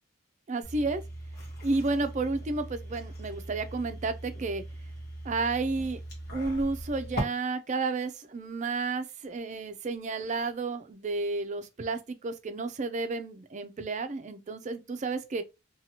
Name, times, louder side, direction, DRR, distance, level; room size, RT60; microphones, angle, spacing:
voice 1, 0.5-1.0 1.6-4.6 5.2-6.0 6.3-15.4, right 3 dB, 35° right, 0.4 m, -31 dB
sound 1, 0.6-7.2, right 1 dB, 50° left, 1.1 m, -40 dB
2.8 x 2.3 x 2.8 m
head